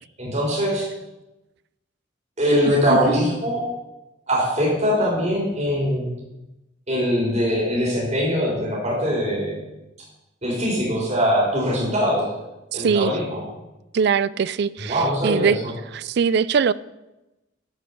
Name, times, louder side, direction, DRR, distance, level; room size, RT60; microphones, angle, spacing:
voice 1, 0.2-0.9 2.4-3.6 4.3-6.1 6.9-9.6 10.4-12.3 12.7-13.4 14.8-15.5, equal, 35° right, 3.9 m, -22 dB
voice 2, 12.7-13.1 13.9-15.6 15.9-16.7, right 6 dB, 55° right, 0.3 m, -21 dB
13.0 x 5.3 x 6.7 m
head